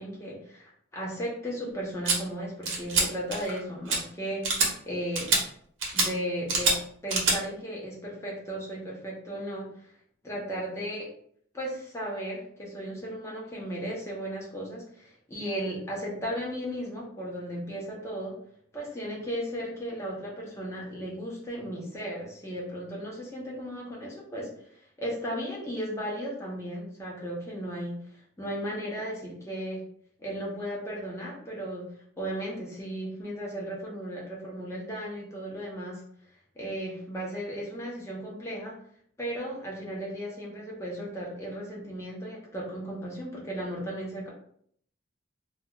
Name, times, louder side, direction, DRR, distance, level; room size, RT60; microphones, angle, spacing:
voice 1, 0.0-5.3 5.9-9.9 10.2-11.1 11.5-18.4 18.7-28.0 28.4-29.8 30.2-31.9 32.2-36.0 36.6-38.8 39.2-44.3, equal, 15° left, -4 dB, 0.7 m, -35 dB
sound 1, 2.1-2.2 2.7-3.1 3.3-3.6 3.9-4.0 4.4-4.7 5.2-5.4 5.8-6.1 6.5-6.8 7.1-7.4, right 3 dB, 90° right, 0.8 m, -24 dB
2.3 x 2.3 x 3.0 m, 0.64 s
head